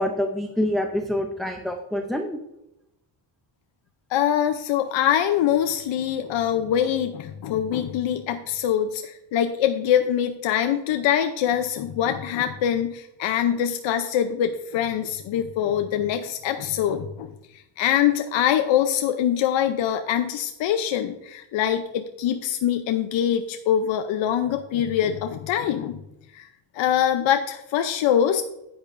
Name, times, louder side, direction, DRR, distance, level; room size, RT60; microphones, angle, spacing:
voice 1, 0.0-2.4, left 1 dB, ahead, 4 dB, 0.4 m, -26 dB
voice 2, 4.1-17.3 17.8-26.0 26.3-26.5 26.7-28.4, left 10 dB, 75° left, 7 dB, 0.7 m, -24 dB
10.0 x 8.8 x 2.6 m, 0.87 s
cardioid pair, 155°, 47 cm